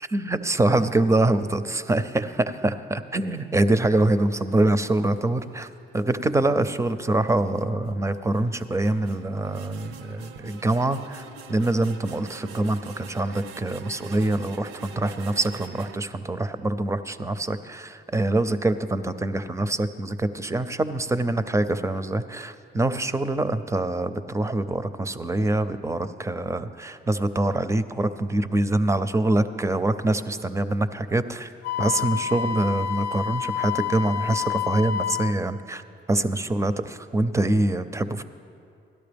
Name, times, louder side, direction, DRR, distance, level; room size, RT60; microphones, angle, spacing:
voice 1, 0.1-5.7 5.9-31.5 31.8-35.8 36.1-38.2, right 2 dB, 15° right, 12 dB, 0.5 m, -25 dB
sound 1, 3.3-16.0, right 5 dB, 85° right, 0.6 m, -46 dB
Wind instrument woodwind instrument, 31.6-35.4, left 9 dB, 75° left, 0.5 m, -28 dB
17.0 x 12.0 x 3.4 m, 2.4 s
cardioid pair, 90°, 20 cm